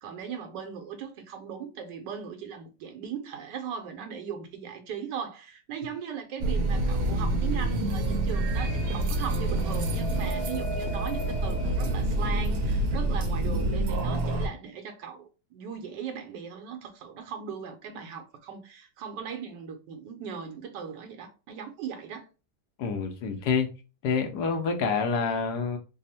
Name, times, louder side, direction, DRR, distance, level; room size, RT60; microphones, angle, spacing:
voice 1, 0.0-22.3, right 7 dB, 85° right, 1.3 m, -38 dB
sound 1, 6.4-14.5, right 1 dB, 65° right, 1.0 m, -27 dB
voice 2, 22.8-23.7 24.0-25.8, left 5 dB, 75° left, 1.1 m, -27 dB
3.4 x 2.0 x 4.0 m
omnidirectional pair, 1.8 m